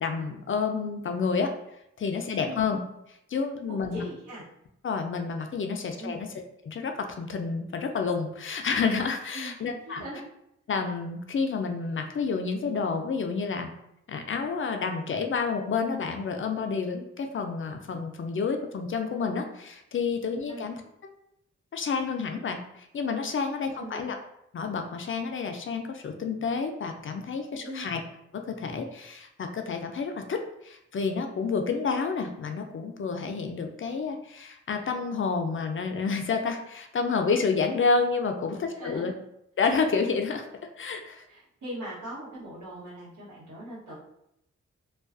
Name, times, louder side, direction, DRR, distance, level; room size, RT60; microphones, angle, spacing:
voice 1, 0.0-1.5 2.0-2.8 3.3-4.0 4.8-6.3 6.7-10.0 10.7-13.7 14.1-20.8 21.7-24.2 24.5-28.0 28.3-39.1 39.6-40.5 40.8-41.2, left 5 dB, 45° left, 5 dB, 0.4 m, -29 dB
voice 2, 3.7-4.5 6.0-6.3 9.3-9.5 9.8-10.2 20.5-20.7 23.7-24.1 27.6-27.9 38.7-39.1 41.3-43.9, equal, 85° right, -8 dB, 1.1 m, -40 dB
2.3 x 2.2 x 2.4 m, 0.79 s
supercardioid pair, 40°, 29 cm